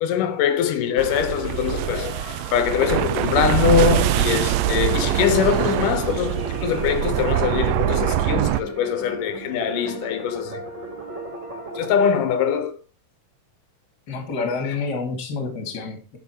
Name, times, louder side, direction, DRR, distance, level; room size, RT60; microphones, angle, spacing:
voice 1, 0.0-10.6 11.8-12.8, left 8 dB, 90° left, 2.6 m, -23 dB
sound 1, 1.0-8.6, right 14 dB, 80° right, 1.6 m, -23 dB
sound 2, 2.5-12.1, right 2 dB, 40° right, 2.4 m, -35 dB
voice 2, 14.1-16.2, left 4 dB, 35° left, 2.2 m, -28 dB
8.6 x 6.5 x 4.5 m
omnidirectional pair, 3.6 m